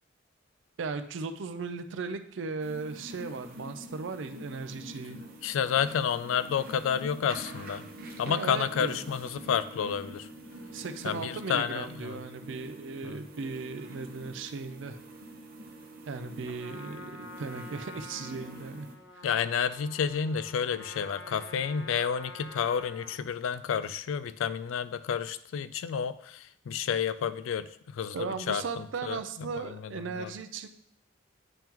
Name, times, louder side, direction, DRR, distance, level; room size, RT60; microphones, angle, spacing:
voice 1, 0.8-5.2 8.3-9.0 10.7-15.0 16.1-18.9 28.1-30.7, right 4 dB, 70° right, 9 dB, 0.4 m, -37 dB
sound 1, 2.6-18.9, right 1 dB, 50° right, 0.8 m, -46 dB
voice 2, 5.4-7.9 8.2-10.3 11.0-12.2 13.0-13.2 19.2-27.7 27.9-30.3, left 7 dB, 85° left, 13 dB, 0.3 m, -30 dB
Trumpet, 16.4-23.3, left 2 dB, 55° left, 0.7 m, -47 dB
9.0 x 3.6 x 2.9 m, 0.68 s
head